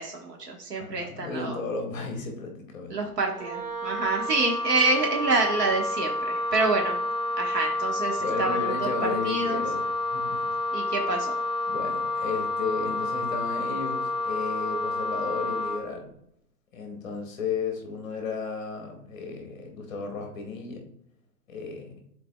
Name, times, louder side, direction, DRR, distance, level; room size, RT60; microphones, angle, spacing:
voice 1, 0.0-1.6 2.9-7.0 7.4-9.6 10.7-11.4, right 3 dB, 85° right, 1 dB, 1.4 m, -27 dB
voice 2, 0.7-3.0 8.2-10.4 11.7-16.1 16.7-20.8 21.5-21.9, left 4 dB, 15° left, 2 dB, 0.9 m, -34 dB
Wind instrument woodwind instrument, 3.3-15.8, left 2 dB, 55° right, 1.6 m, -29 dB
10.5 x 4.0 x 2.2 m, 0.75 s
hypercardioid pair, 165°, 47 cm